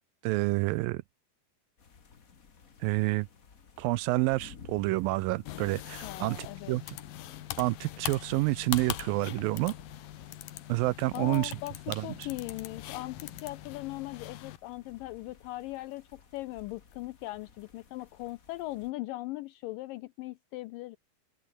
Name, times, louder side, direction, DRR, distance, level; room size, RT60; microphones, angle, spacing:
voice 1, 0.2-1.0 2.8-3.3 3.8-7.0 7.6-9.7 10.7-11.5 11.9-12.1, right 20 dB, 80° right, 2.1 m, -28 dB
sound 1, 1.8-18.9, left 5 dB, 55° left, 0.9 m, -55 dB
sound 2, 5.5-14.6, left 14 dB, 70° left, 2.8 m, -42 dB
voice 2, 6.0-6.8 11.1-21.0, left 18 dB, 90° left, 1.9 m, -39 dB
open air
omnidirectional pair, 4.5 m